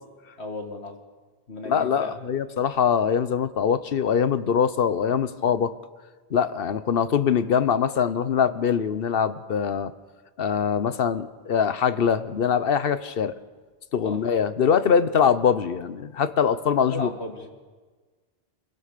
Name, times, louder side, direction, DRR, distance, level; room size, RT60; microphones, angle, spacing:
voice 1, 0.4-1.0 1.5-2.2 14.0-14.2 16.7-17.5, left 2 dB, 85° left, 4 dB, 2.4 m, -35 dB
voice 2, 1.7-5.7 6.3-9.9 10.4-13.3 13.9-17.1, left 7 dB, 65° left, 13 dB, 1.1 m, -23 dB
28.0 x 16.5 x 6.7 m, 1.4 s
omnidirectional pair, 1.1 m